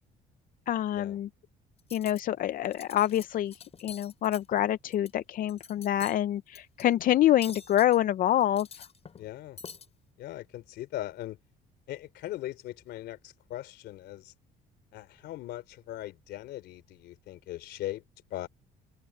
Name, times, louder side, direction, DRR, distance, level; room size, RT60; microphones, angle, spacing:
voice 1, 0.7-1.3 1.9-3.5 3.8-8.8, left 12 dB, 55° left, 0.5 m, -26 dB
Cutlery silverware, 1.8-2.2 2.6-3.2 3.5-5.1 5.5-6.2 6.5-6.8 7.4-8.0 8.4-9.3 9.6-9.9, left 6 dB, 40° left, 6.4 m, -46 dB
voice 2, 9.2-9.6 10.2-11.4 11.9-14.3 14.9-18.0 18.3-18.5, left 14 dB, 80° left, 3.2 m, -39 dB
cardioid pair, 110°, 17 cm